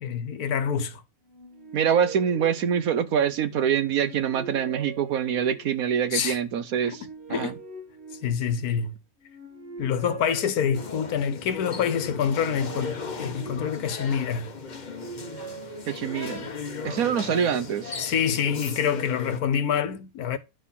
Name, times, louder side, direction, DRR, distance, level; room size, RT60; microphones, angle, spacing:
voice 1, 0.0-1.0 6.1-6.4 6.8-7.0 7.3-7.6 8.2-8.9 9.8-14.5 18.0-20.4, left 7 dB, 75° left, 1.4 m, -26 dB
sound 1, 1.3-3.4 3.9-5.9 6.6-8.7 9.2-11.2 11.9-14.0 14.5-16.5, right 4 dB, 45° right, 1.8 m, -43 dB
voice 2, 1.7-7.0 7.3-7.5 15.9-16.5 16.8-17.9, right 8 dB, 70° right, 1.3 m, -25 dB
sound 2, 10.7-19.4, left 4 dB, 35° left, 1.0 m, -37 dB
10.5 x 4.1 x 5.7 m
omnidirectional pair, 1.6 m